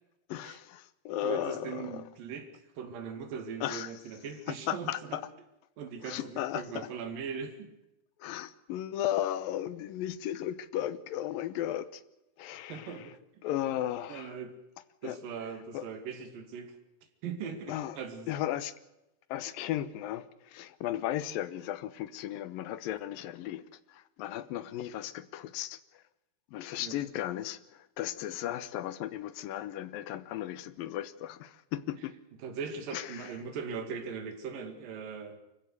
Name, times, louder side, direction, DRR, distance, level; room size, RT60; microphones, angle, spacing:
voice 1, 0.3-2.0 3.6-4.0 4.5-5.2 6.0-6.9 8.2-12.0 12.4-13.1 13.4-14.4 15.0-15.2 15.7-15.9 17.7-18.0 18.3-18.7 19.3-26.0 26.5-32.1 32.9-33.4, left 12 dB, 75° left, 2.7 m, -35 dB
voice 2, 1.2-2.5 2.8-5.2 5.8-7.7 12.7-13.4 14.1-14.6 15.0-16.7 17.2-18.3 26.8-27.0 32.4-35.4, right 6 dB, 70° right, 3.9 m, -40 dB
25.0 x 15.0 x 8.1 m
omnidirectional pair, 4.2 m